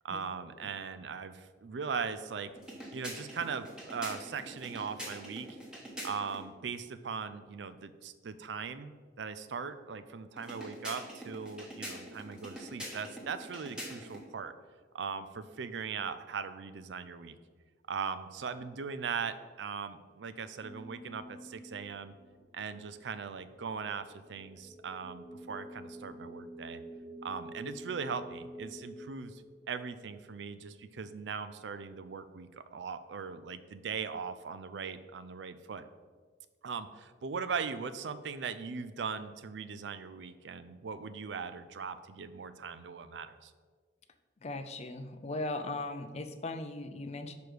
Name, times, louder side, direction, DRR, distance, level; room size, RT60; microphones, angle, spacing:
voice 1, 0.0-2.5 2.9-5.5 6.0-8.9 9.2-14.5 14.9-17.3 17.9-22.1 22.5-26.8 27.2-29.4 29.7-35.9 36.6-43.5, right 5 dB, 75° right, 12 dB, 0.4 m, -39 dB
sound 1, 2.6-6.4 10.4-14.3, equal, 5° right, 1.2 m, -44 dB
sound 2, 20.6-30.4, equal, 55° left, 1.6 m, -49 dB
voice 2, 44.4-47.4, left 2 dB, 35° left, 8 dB, 0.5 m, -38 dB
5.1 x 4.8 x 6.2 m, 1.5 s
head